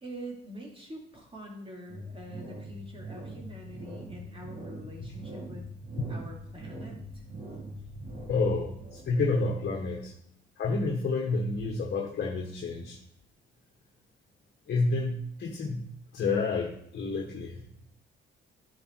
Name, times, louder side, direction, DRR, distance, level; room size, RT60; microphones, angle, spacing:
voice 1, 0.0-5.7 6.1-7.2, right 1 dB, 25° right, -1 dB, 2.8 m, -45 dB
sound 1, 1.9-10.1, right 1 dB, 45° right, 2.9 m, -43 dB
voice 2, 8.3-10.1 10.6-13.0 14.7-17.6, left 3 dB, 55° left, 0 dB, 1.4 m, -30 dB
10.5 x 5.0 x 4.6 m, 0.70 s
cardioid pair, 90°, 20 cm